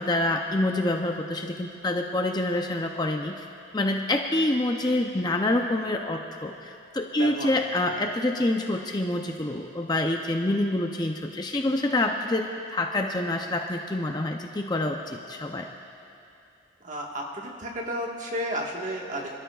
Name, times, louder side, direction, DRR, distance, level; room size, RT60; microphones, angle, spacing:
voice 1, 0.0-3.5 3.7-15.7, left 1 dB, 20° left, 3 dB, 0.5 m, -27 dB
voice 2, 7.2-7.6 16.8-19.4, equal, 40° right, -1 dB, 1.5 m, -32 dB
27.0 x 12.5 x 2.4 m, 2.7 s
head